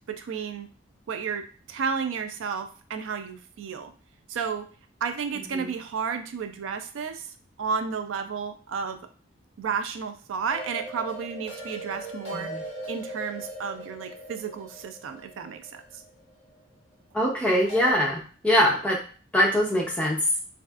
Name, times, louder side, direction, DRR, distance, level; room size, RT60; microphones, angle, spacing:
voice 1, 0.1-0.7 1.1-3.9 4.3-4.7 5.0-7.3 7.6-9.0 9.6-12.5 12.9-16.0, right 6 dB, 85° right, 8 dB, 0.4 m, -32 dB
sound 1, 10.5-16.5 17.7-17.9, right 1 dB, 35° left, 1.0 m, -40 dB
voice 2, 12.3-12.6 17.1-19.0 19.3-20.3, equal, 5° left, -3 dB, 0.6 m, -23 dB
3.1 x 2.6 x 2.3 m, 0.40 s
head